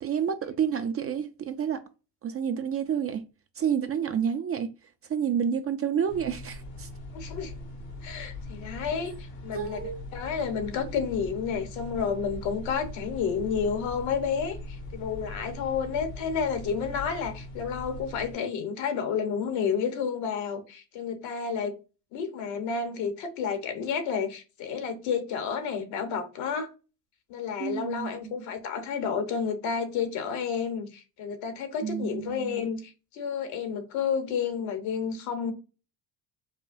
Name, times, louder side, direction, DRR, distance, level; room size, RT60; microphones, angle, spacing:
voice 1, 0.0-1.8 2.2-3.3 3.6-4.7 5.1-6.9 9.5-10.0 27.6-28.5 31.8-32.6, right 8 dB, 30° right, 0.4 m, -29 dB
sound 1, 6.1-18.3, left 2 dB, 85° left, 1.8 m, -41 dB
voice 2, 7.1-7.5 8.0-9.1 9.4-9.8 10.1-21.7 22.1-26.7 27.3-35.5, left 6 dB, 70° left, 1.1 m, -30 dB
5.0 x 2.2 x 2.6 m
hypercardioid pair, 70°, 48 cm